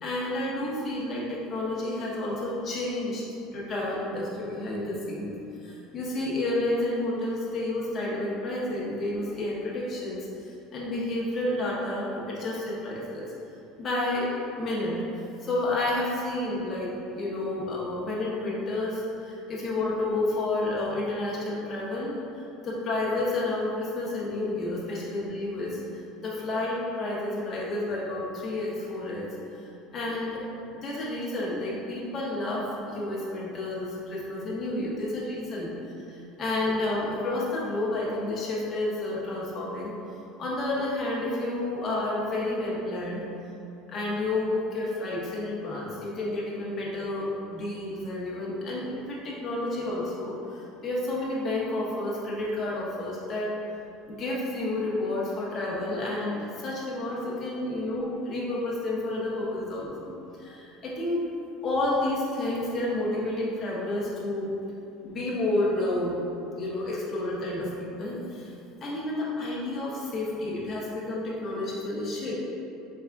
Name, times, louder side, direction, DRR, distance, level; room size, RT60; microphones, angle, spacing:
voice 1, 0.0-3.2 3.5-5.3 5.6-13.3 13.8-14.3 14.5-15.0 15.4-25.8 26.2-29.3 29.9-30.4 30.8-35.7 36.1-39.9 40.4-43.2 43.9-53.5 54.1-60.1 60.4-61.3 61.6-64.5 65.0-66.3 66.5-68.5 68.8-72.3, left 2 dB, 25° left, -5 dB, 0.8 m, -30 dB
4.8 x 3.3 x 2.4 m, 2.7 s
cardioid pair, 170°, 0 cm